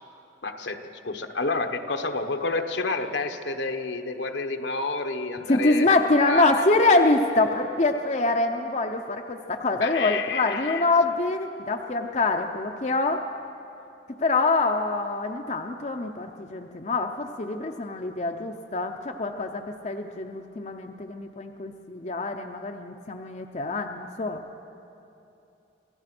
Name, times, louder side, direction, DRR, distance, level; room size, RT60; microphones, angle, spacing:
voice 1, 0.4-6.0 6.2-6.6 9.8-10.8, left 3 dB, 70° left, 6 dB, 1.2 m, -29 dB
voice 2, 5.5-13.2 14.2-24.4, left 2 dB, 40° left, 4 dB, 0.7 m, -25 dB
27.0 x 16.5 x 6.1 m, 2.9 s
head